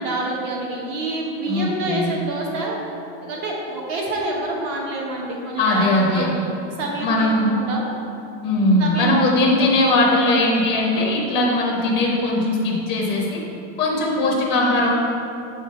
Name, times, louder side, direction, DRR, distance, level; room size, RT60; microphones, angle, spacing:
voice 1, 0.0-2.8 3.2-6.4 6.8-7.8 8.8-9.2, right 2 dB, 45° right, -2 dB, 1.1 m, -27 dB
voice 2, 1.5-2.1 5.6-6.3 7.0-7.5 8.4-13.4 13.8-14.9, left 1 dB, 15° left, -3 dB, 0.6 m, -19 dB
7.0 x 3.8 x 4.2 m, 2.8 s
supercardioid pair, 175°, 36 cm